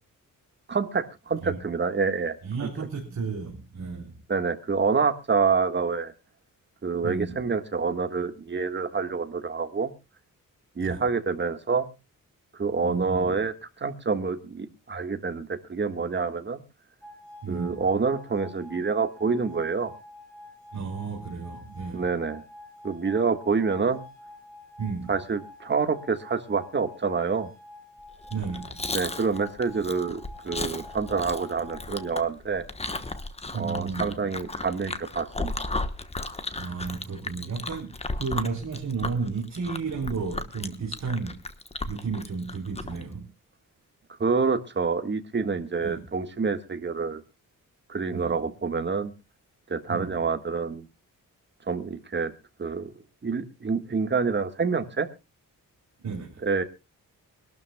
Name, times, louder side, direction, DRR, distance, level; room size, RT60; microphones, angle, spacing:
voice 1, 0.7-2.3 2.6-2.7 4.3-6.1 6.8-9.9 10.7-11.9 12.6-16.6 17.5-19.9 21.9-22.4 22.8-24.0 25.1-27.5 28.9-32.7 33.5-35.7 44.2-47.2 47.9-49.1 49.7-50.8 51.7-52.3 52.6-52.9 53.2-55.1 56.4-56.6, right 5 dB, 30° right, 8 dB, 1.6 m, -27 dB
voice 2, 2.4-4.1 7.0-7.4 10.8-11.0 12.8-13.3 17.4-17.9 20.7-22.1 24.8-25.1 28.3-29.0 33.5-34.3 36.6-41.4 41.9-43.3 45.8-46.1 48.1-48.4 49.9-50.2 56.0-56.4, right 4 dB, 50° right, -1 dB, 3.7 m, -33 dB
sound 1, 17.0-32.2, left 2 dB, 5° left, 5.1 m, -48 dB
Chewing mastication, 28.2-43.0, left 2 dB, 20° left, 1.1 m, -35 dB
24.5 x 12.5 x 2.3 m, 0.27 s
wide cardioid pair, 145°, 34 cm